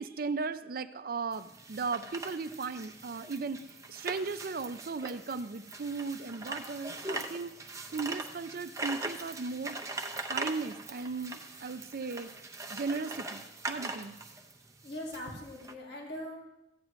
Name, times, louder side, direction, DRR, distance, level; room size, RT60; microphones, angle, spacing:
voice 1, 0.0-3.6 3.9-7.5 7.9-9.8 10.3-12.3 12.7-14.1, right 4 dB, 55° right, 11 dB, 0.5 m, -36 dB
sound 1, 1.3-15.7, right 2 dB, 20° right, 0.7 m, -41 dB
voice 2, 14.8-16.4, left 1 dB, 65° left, 0 dB, 2.1 m, -41 dB
14.5 x 8.8 x 3.1 m, 0.90 s
head